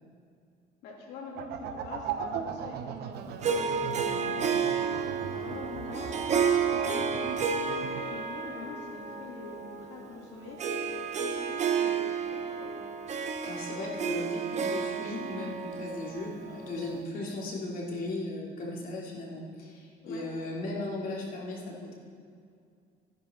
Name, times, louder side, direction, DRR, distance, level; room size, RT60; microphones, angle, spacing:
voice 1, 0.8-7.4 7.7-12.8 20.0-20.3, left 4 dB, 85° left, -3 dB, 3.0 m, -45 dB
sound 1, 1.4-8.0, right 7 dB, 75° right, 0.8 m, -38 dB
Harp, 3.4-17.1, right 6 dB, 45° right, 0.9 m, -31 dB
voice 2, 13.4-22.0, left 2 dB, 55° left, -3 dB, 3.0 m, -37 dB
14.5 x 10.5 x 3.9 m, 2.3 s
cardioid pair, 110°, 17 cm